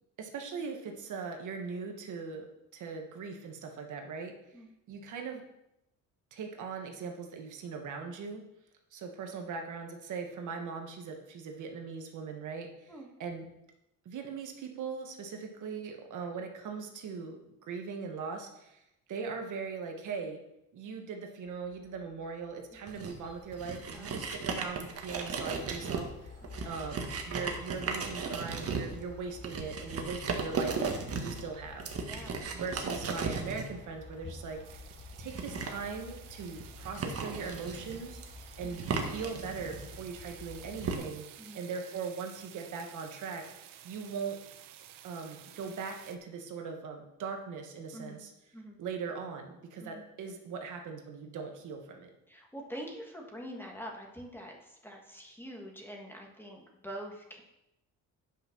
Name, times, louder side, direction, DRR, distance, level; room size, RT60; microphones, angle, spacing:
voice 1, 0.2-2.5 2.7-4.3 4.9-5.4 6.3-8.4 8.9-12.9 13.2-13.5 14.0-17.4 17.7-18.8 19.1-20.4 20.7-26.3 26.6-30.8 31.1-31.9 32.5-34.6 35.2-38.2 38.6-41.2 41.5-43.4 43.8-44.4 45.0-48.3 48.8-52.1, right 5 dB, 65° right, 3 dB, 1.5 m, -40 dB
sound 1, 21.5-40.9, left 4 dB, 25° left, 1.1 m, -51 dB
sound 2, 22.9-41.0, right 4 dB, 45° right, 1.5 m, -37 dB
voice 2, 23.9-24.4 26.5-26.7 32.0-32.4 41.4-41.7 47.9-48.3 48.5-48.8 49.8-50.0 52.3-57.4, equal, 5° left, 0 dB, 1.9 m, -45 dB
sound 3, 34.4-46.2, right 11 dB, 90° right, 0.9 m, -53 dB
9.3 x 5.5 x 6.0 m, 0.88 s
cardioid pair, 115°, 33 cm